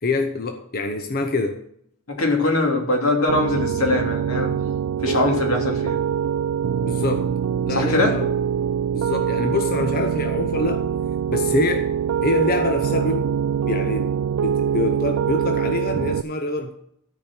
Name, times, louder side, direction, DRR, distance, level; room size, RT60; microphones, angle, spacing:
voice 1, 0.0-1.6 6.8-7.3 7.7-8.3 8.9-10.9 11.3-11.9 12.2-13.3 13.7-14.1 14.4-16.7, left 2 dB, 45° left, 6 dB, 0.8 m, -25 dB
voice 2, 2.1-4.5 5.0-6.0 7.7-8.1, left 2 dB, 90° left, 1 dB, 2.9 m, -22 dB
Piano, 3.3-16.2, right 8 dB, 85° right, 0.3 m, -24 dB
13.5 x 5.1 x 7.7 m, 0.71 s
head